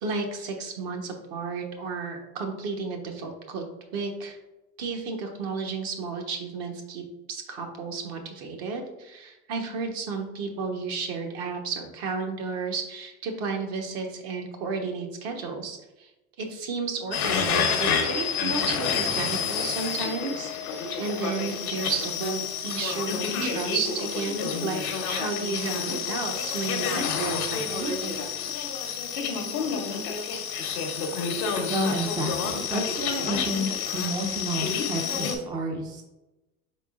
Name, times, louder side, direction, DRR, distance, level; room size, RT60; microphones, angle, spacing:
voice 1, 0.0-3.6 3.9-4.4 4.8-7.0 7.3-16.1 16.4-28.2, right 4 dB, 55° right, 3 dB, 1.1 m, -33 dB
sound 1, 17.1-35.4, left 6 dB, 85° left, 0.9 m, -29 dB
voice 2, 31.7-33.7 33.9-36.0, right 1 dB, 10° right, 2 dB, 0.3 m, -30 dB
4.6 x 3.6 x 2.4 m, 0.99 s
hypercardioid pair, 100°, 43 cm